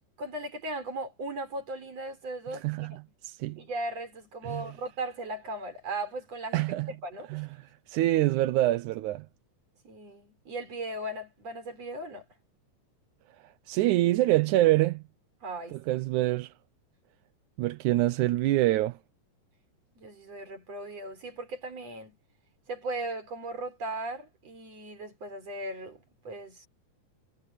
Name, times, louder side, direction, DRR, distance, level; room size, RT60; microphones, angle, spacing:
voice 1, 0.2-3.0 3.5-7.5 9.8-12.2 15.4-16.1 19.9-22.2 22.7-26.7, right 2 dB, 45° right, 6.6 m, -37 dB
voice 2, 2.5-3.0 3.2-3.6 4.4-4.6 6.5-6.9 7.3-7.5 7.9-9.3 13.7-15.0 15.7-16.5 17.6-19.0, right 16 dB, 75° right, 2.0 m, -25 dB
omnidirectional pair, 3.9 m